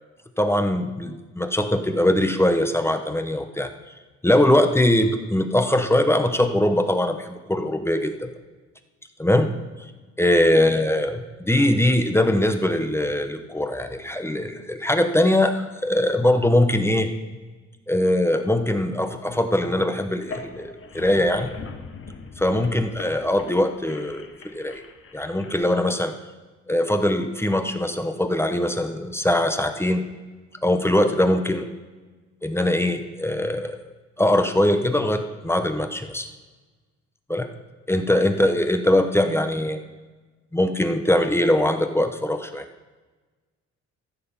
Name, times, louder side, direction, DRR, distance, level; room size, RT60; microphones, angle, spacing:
voice 1, 0.4-3.7 4.2-8.3 9.2-9.5 10.2-17.1 17.9-21.5 22.4-24.3 24.5-24.8 25.1-26.1 26.7-30.0 30.6-31.7 32.4-33.8 34.2-36.3 37.3-37.5 37.9-39.8 40.5-42.6, left 1 dB, 10° left, 7 dB, 1.0 m, -21 dB
sound 1, 20.2-25.5, left 4 dB, 45° left, 1.5 m, -40 dB
15.0 x 6.7 x 5.5 m, 1.3 s
cardioid pair, 90°, 30 cm